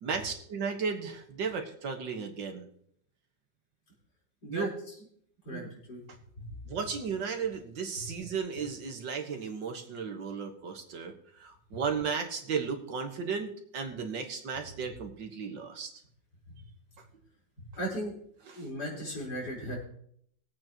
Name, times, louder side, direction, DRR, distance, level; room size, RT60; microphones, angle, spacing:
voice 1, 0.0-2.7 4.5-4.7 5.5-5.6 6.7-15.9 18.5-18.6, right 5 dB, 80° right, 4 dB, 2.1 m, -35 dB
voice 2, 5.4-6.0 6.4-6.6 8.0-8.1 11.7-11.8 16.5-16.6 17.8-18.1 18.5-19.8, equal, 60° left, -4 dB, 5.0 m, -37 dB
21.5 x 8.5 x 3.0 m, 0.66 s
omnidirectional pair, 2.0 m